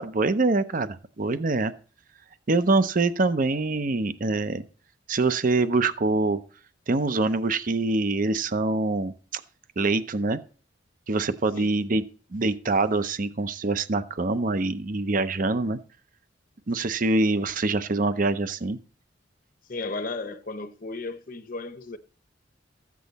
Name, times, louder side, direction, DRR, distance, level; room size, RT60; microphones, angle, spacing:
voice 1, 0.0-1.7 2.5-4.6 5.1-6.4 6.9-9.4 9.8-10.4 11.1-12.0 12.3-15.8 16.7-18.8, right 3 dB, 45° right, 0.6 m, -24 dB
voice 2, 19.7-22.0, left 3 dB, 45° left, 0.9 m, -34 dB
14.0 x 8.5 x 4.1 m
head